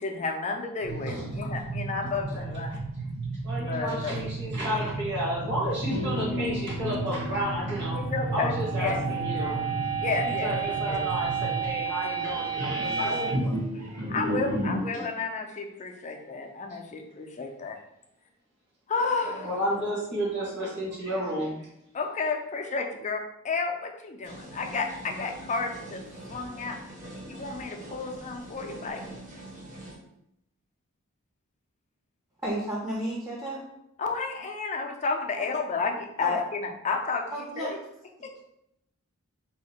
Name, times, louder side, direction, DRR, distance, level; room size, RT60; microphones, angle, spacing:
voice 1, 0.0-2.8 3.6-4.2 7.9-9.0 9.3-9.6 10.0-11.0 13.0-13.4 14.1-17.8 18.9-19.6 21.9-26.0 26.3-26.8 27.3-29.1 34.0-37.8 38.2-38.3, left 4 dB, 30° left, 3 dB, 0.4 m, -32 dB
sound 1, 0.8-11.8, right 3 dB, 70° right, 0.6 m, -34 dB
voice 2, 2.1-2.4 3.4-8.0 8.3-9.6 10.0-13.5 14.9-15.0 19.3-21.6, equal, 55° right, -6 dB, 1.2 m, -32 dB
sound 2, 5.7-14.9, right 3 dB, 85° right, 1.1 m, -31 dB
sound 3, 24.2-30.0, right 1 dB, 35° right, 0.9 m, -43 dB
voice 3, 32.4-33.6 35.4-35.5 36.2-36.4 37.3-37.7, right 1 dB, 15° right, -6 dB, 0.6 m, -32 dB
2.8 x 2.5 x 4.1 m, 0.80 s
head